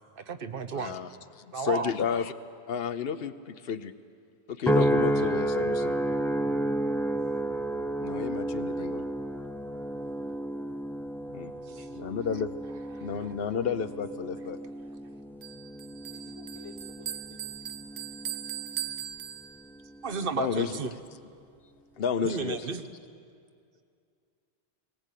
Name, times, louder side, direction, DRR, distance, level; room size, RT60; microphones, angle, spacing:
voice 1, 0.2-1.0 1.5-1.9 13.0-13.1 20.0-20.9 22.2-22.8, right 5 dB, 60° right, 10 dB, 1.1 m, -33 dB
voice 2, 0.7-1.1 1.6-2.3 2.7-3.9 4.5-5.9 8.0-9.0 11.3-11.5 12.0-12.5 13.0-14.6 20.3-20.7 22.0-22.7, left 7 dB, 70° left, 12 dB, 0.9 m, -31 dB
sound 1, 4.7-19.1 19.7-20.1, right 1 dB, 5° left, 0.4 m, -31 dB
voice 3, 11.7-12.1 16.1-18.0, left 2 dB, 30° right, 5 dB, 1.4 m, -53 dB
Bell, 15.4-19.9, right 10 dB, 85° right, 1.0 m, -39 dB
19.0 x 18.5 x 8.3 m, 2.3 s
omnidirectional pair, 1.1 m